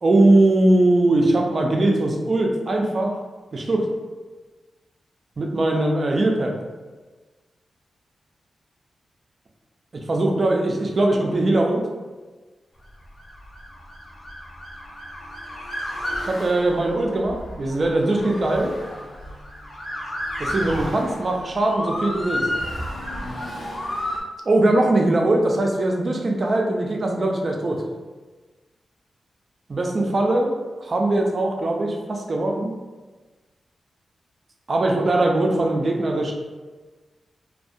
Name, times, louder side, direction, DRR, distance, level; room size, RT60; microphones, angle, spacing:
voice 1, 0.0-3.1 3.5-3.9 5.4-6.5 9.9-11.8 16.2-18.7 20.4-22.5 24.5-27.8 29.7-30.5 30.8-32.7 34.7-36.3, right 2 dB, 35° right, 1 dB, 0.3 m, -21 dB
Motor vehicle (road) / Siren, 13.1-24.2, left 1 dB, 40° left, 0.5 m, -32 dB
2.5 x 2.1 x 2.4 m, 1.3 s
wide cardioid pair, 170°, 0 cm